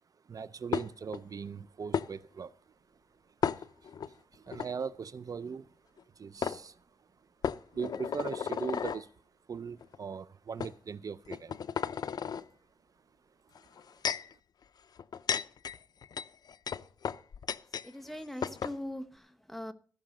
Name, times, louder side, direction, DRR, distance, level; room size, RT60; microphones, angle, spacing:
voice 1, 0.2-2.7 3.3-5.7 6.1-7.1 7.7-9.1 9.5-11.6 13.6-13.7, right 6 dB, 60° right, 0.5 m, -40 dB
sound 1, 0.7-1.2 1.9-2.1 3.4-4.1 4.5-4.7 6.0-6.1 6.4-6.6 7.4-9.0 9.8-10.0 10.6-10.7 11.3-12.4 13.5-14.3 15.0-17.9 18.1-18.2 18.4-18.8, left 7 dB, 80° left, 0.5 m, -34 dB
voice 2, 17.8-19.7, left 1 dB, 5° left, 1.1 m, -41 dB
15.0 x 5.9 x 6.5 m
wide cardioid pair, 80°, 7 cm